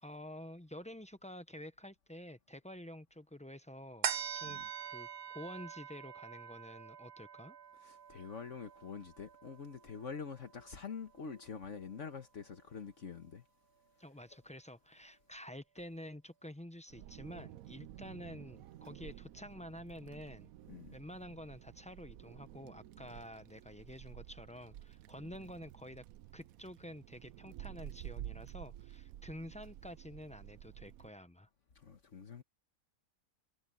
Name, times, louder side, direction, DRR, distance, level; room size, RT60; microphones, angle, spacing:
voice 1, 0.0-4.1 4.3-5.1 5.3-7.6 14.0-20.5 20.9-26.0 26.3-31.5, left 1 dB, 10° left, 0.3 m, -49 dB
sound 1, 4.0-10.8 11.2-11.3, right 8 dB, 50° right, 0.9 m, -44 dB
voice 2, 7.8-13.4 20.7-21.0 31.7-32.4, left 6 dB, 55° left, 1.5 m, -46 dB
Wind, 16.9-31.1, right 13 dB, 75° right, 1.0 m, -51 dB
omnidirectional pair, 1.5 m